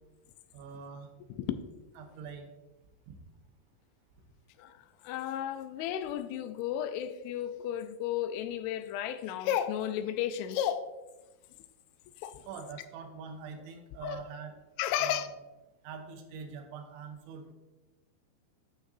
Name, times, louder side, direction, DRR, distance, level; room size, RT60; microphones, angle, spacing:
voice 1, 0.5-1.1 2.0-2.5 3.1-3.2 12.5-14.5 15.0-15.3 15.8-17.5, right 6 dB, 85° right, 3.2 m, -44 dB
voice 2, 1.3-1.6 4.6-10.9 12.2-12.5 14.0-14.2 14.8-15.3, left 10 dB, 85° left, 3.0 m, -33 dB
11.5 x 6.6 x 2.6 m
omnidirectional pair, 5.3 m